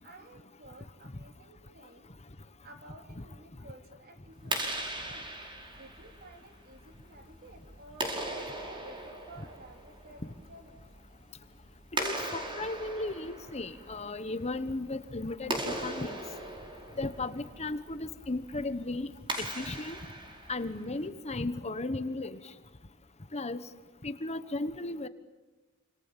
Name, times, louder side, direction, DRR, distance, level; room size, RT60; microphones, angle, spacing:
voice 1, 0.0-2.1 2.6-5.3 5.7-10.9, right 1 dB, 45° right, 5 dB, 3.8 m, -53 dB
Clapping, 4.3-21.1, right 1 dB, 25° right, 5.2 m, -39 dB
voice 2, 12.0-16.1 17.0-19.1 19.4-20.0 20.5-22.4 23.3-23.6 24.0-25.1, left 2 dB, 30° left, 12 dB, 1.2 m, -35 dB
29.0 x 26.5 x 7.4 m, 1.1 s
head